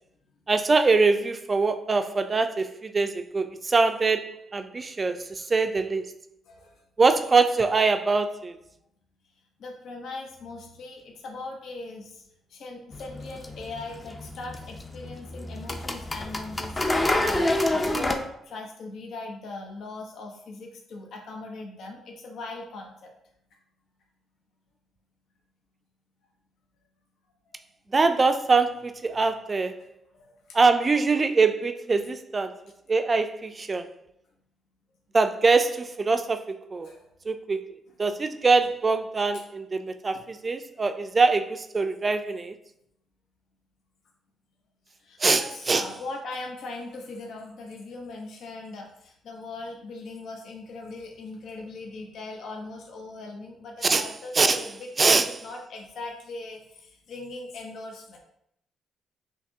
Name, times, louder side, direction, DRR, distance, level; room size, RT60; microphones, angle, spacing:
voice 1, 0.5-6.1 7.0-8.5 27.9-29.8 30.5-32.5 32.9-33.9 35.1-36.9 37.3-37.7 38.0-42.6 45.2-45.4 45.7-45.8 53.8-54.1 54.3-54.7 55.0-55.3, right 4 dB, 30° right, 0.4 m, -23 dB
voice 2, 6.5-6.8 9.6-12.2 12.5-23.1 30.1-30.6 36.8-37.1 40.1-40.2 45.0-58.2, left 3 dB, 70° left, 0.8 m, -40 dB
sound 1, 12.9-18.2, left 1 dB, 20° left, 0.6 m, -28 dB
6.6 x 2.9 x 2.7 m
cardioid pair, 90°, 0 cm